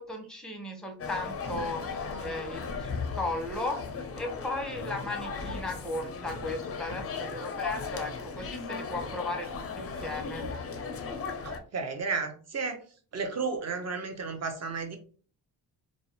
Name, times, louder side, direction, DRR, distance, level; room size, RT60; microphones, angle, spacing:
voice 1, 0.0-10.5, left 2 dB, ahead, 3 dB, 0.8 m, -36 dB
sound 1, 1.0-11.6, left 5 dB, 35° left, 0.4 m, -36 dB
voice 2, 11.4-12.8 13.1-15.0, right 4 dB, 35° right, 5 dB, 0.7 m, -33 dB
2.5 x 2.0 x 2.8 m, 0.41 s
cardioid pair, 70°, 43 cm